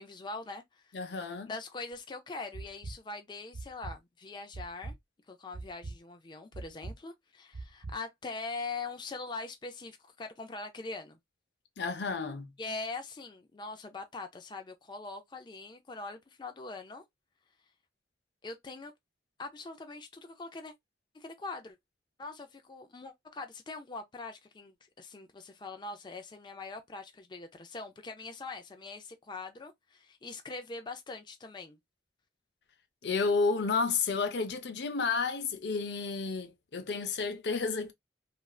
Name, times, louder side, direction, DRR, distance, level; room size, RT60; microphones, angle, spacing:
voice 1, 0.0-4.9 5.3-11.2 12.6-17.0 18.4-18.9 19.4-20.7 21.1-21.8 22.2-31.8, left 3 dB, 25° left, 0.4 m, -42 dB
voice 2, 0.9-1.5 11.8-12.5 33.0-37.9, left 4 dB, 70° left, 0.6 m, -31 dB
sound 1, 1.9-2.0 2.5-3.0 3.5-4.0 4.5-5.0 5.5-6.0 6.5-7.0 7.5-7.9, right 3 dB, 60° right, 0.6 m, -41 dB
3.1 x 2.5 x 2.3 m
head